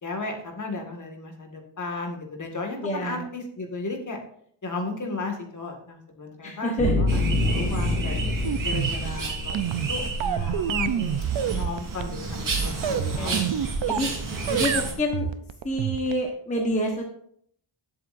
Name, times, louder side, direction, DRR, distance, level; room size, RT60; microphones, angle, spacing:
voice 1, 0.0-4.2 4.6-11.2 11.4-13.7, left 3 dB, 35° left, 3 dB, 2.0 m, -35 dB
voice 2, 2.8-3.2 6.4-7.0 8.0-8.2 12.8-13.5 13.9-14.1 14.5-15.3 15.6-17.0, equal, 15° left, 0 dB, 1.2 m, -28 dB
sound 1, 6.8-10.0, left 2 dB, 10° right, 5.3 m, -26 dB
sound 2, 7.1-14.9, right 3 dB, 40° right, 3.2 m, -31 dB
sound 3, 8.4-14.2 14.5-16.3, right 9 dB, 65° right, 0.7 m, -28 dB
19.0 x 7.7 x 2.6 m, 0.65 s
wide cardioid pair, 180°, 49 cm